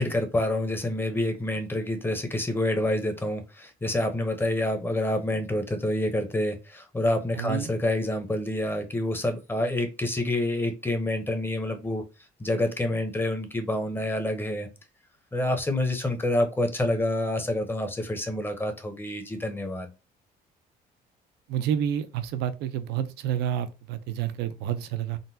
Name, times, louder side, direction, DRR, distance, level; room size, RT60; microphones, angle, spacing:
voice 1, 0.0-12.0 12.4-14.7 15.3-19.9, left 1 dB, 15° left, 0.7 m, -27 dB
voice 2, 7.3-7.7 21.5-25.2, right 10 dB, 80° right, 0.5 m, -29 dB
3.8 x 2.1 x 2.6 m
cardioid pair, 110°, 17 cm